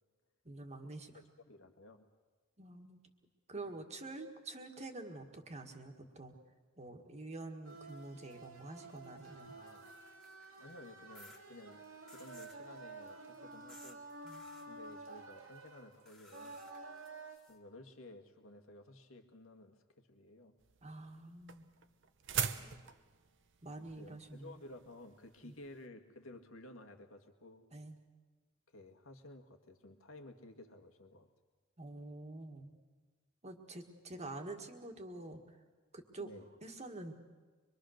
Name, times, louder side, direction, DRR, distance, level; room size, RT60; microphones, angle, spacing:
voice 1, 0.5-1.1 2.6-3.0 3.5-6.3 6.8-9.6 14.2-14.4 20.8-21.7 22.6-22.8 23.6-24.6 25.4-25.6 27.7-28.0 31.8-32.7 33.4-35.4 35.9-36.3 36.6-37.1, right 2 dB, 35° right, 4 dB, 1.9 m, -47 dB
voice 2, 1.5-2.1 3.6-3.7 9.5-9.9 10.6-14.0 14.7-16.6 17.5-20.5 23.8-27.7 28.7-31.3 36.2-36.5, left 1 dB, 85° left, 4 dB, 1.9 m, -54 dB
sound 1, 7.6-17.4, right 3 dB, 85° right, 2.9 m, -51 dB
sound 2, 9.4-10.5 11.1-11.4 12.1-12.6 13.7-14.0 14.3-14.7 16.1-17.6, left 1 dB, ahead, 1.9 m, -59 dB
sound 3, 20.6-25.8, right 8 dB, 65° right, 1.0 m, -41 dB
24.5 x 23.0 x 6.5 m, 1.4 s
head